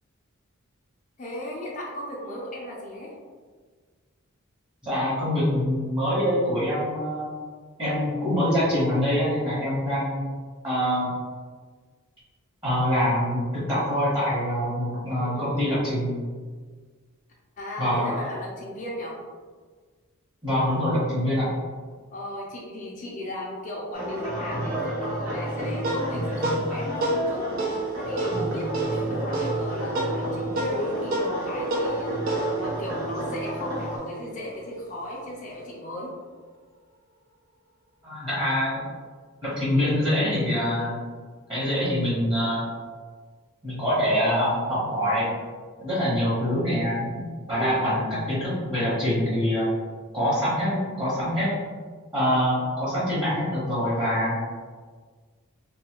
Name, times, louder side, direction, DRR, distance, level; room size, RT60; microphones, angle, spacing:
voice 1, 1.2-3.1 15.1-15.8 17.6-19.2 22.1-36.1 47.5-48.0, equal, 35° left, -4 dB, 0.5 m, -36 dB
voice 2, 4.8-7.3 7.8-10.2 10.6-11.1 12.6-16.2 17.8-18.1 20.4-21.5 38.0-38.8 39.4-41.0 41.5-42.7 43.6-45.3 45.8-49.7 50.1-51.5 52.1-54.4, equal, 20° right, -10 dB, 1.0 m, -25 dB
sound 1, 23.9-34.0, right 1 dB, 85° right, 0.9 m, -30 dB
sound 2, 25.4-34.2, right 2 dB, 40° right, 0.4 m, -31 dB
2.6 x 2.3 x 2.9 m, 1.5 s
head